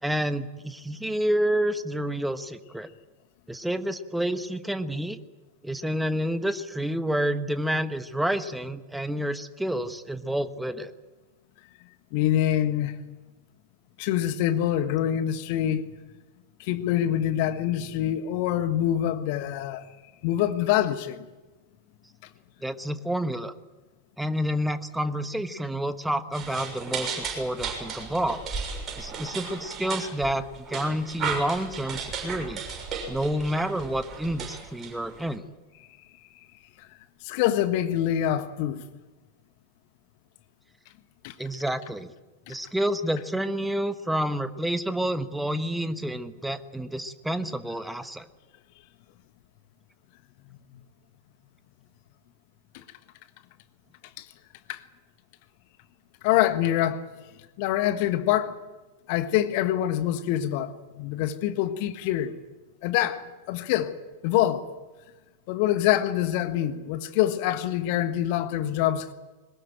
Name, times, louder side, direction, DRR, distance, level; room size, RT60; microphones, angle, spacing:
voice 1, 0.0-2.9 3.5-5.2 5.6-10.9 22.6-23.5 24.2-28.4 29.0-32.6 33.1-35.4 41.4-42.1 42.5-48.3, right 1 dB, 5° right, 1.3 m, -29 dB
voice 2, 12.1-13.0 14.0-15.8 16.6-19.9 20.2-21.3 37.2-38.8 41.2-41.3 42.5-42.6 54.2-54.3 54.7-54.8 56.2-57.0 57.6-58.6 59.1-62.3 62.8-63.9 64.2-64.7 65.5-69.1, left 12 dB, 45° left, 1.4 m, -25 dB
sound 1, 26.3-35.3, right 5 dB, 25° right, 6.6 m, -35 dB
22.0 x 20.0 x 9.0 m
figure-of-eight pair, 90°, 0 cm